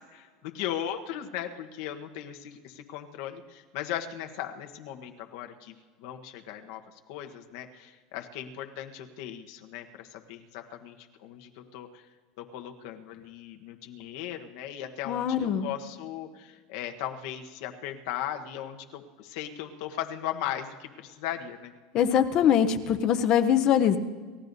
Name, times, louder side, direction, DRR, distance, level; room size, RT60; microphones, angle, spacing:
voice 1, 0.1-6.8 7.1-12.0 12.4-21.7, left 11 dB, 55° left, 4 dB, 1.2 m, -37 dB
voice 2, 15.1-15.7 21.9-24.0, left 9 dB, 30° left, 9 dB, 0.7 m, -23 dB
29.0 x 15.0 x 2.7 m, 1.5 s
supercardioid pair, 175°, 2 cm